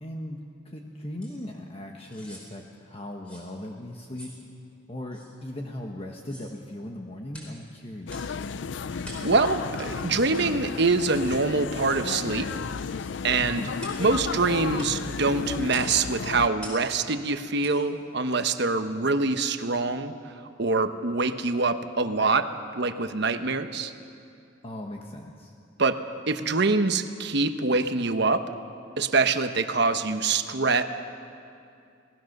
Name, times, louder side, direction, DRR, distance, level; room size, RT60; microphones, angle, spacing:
voice 1, 0.0-4.3 4.9-8.4 13.4-13.7 24.6-25.5, left 1 dB, 30° left, 1 dB, 1.2 m, -38 dB
sound 1, 1.2-1.4 2.0-2.5 3.2-3.5 4.1-4.4 5.1-5.3 6.2-6.5 7.3-7.6 8.1-8.3 9.0-9.3 9.8-9.9 10.3-10.5 11.1-11.3 11.9-12.1 13.0-13.2 13.8-14.0 14.8-14.9 15.7-16.0 16.6-16.9 17.6-17.8 18.3-18.4, right 1 dB, 5° left, 4.7 m, -45 dB
sound 2, 8.1-16.5, left 5 dB, 65° left, 0.5 m, -33 dB
voice 2, 9.2-12.5 13.2-13.6 14.0-20.1 20.6-22.5 22.7-23.9 25.8-26.0 26.3-28.4 29.0-30.8, right 3 dB, 55° right, 9 dB, 1.0 m, -24 dB
27.0 x 19.0 x 6.6 m, 2.5 s
head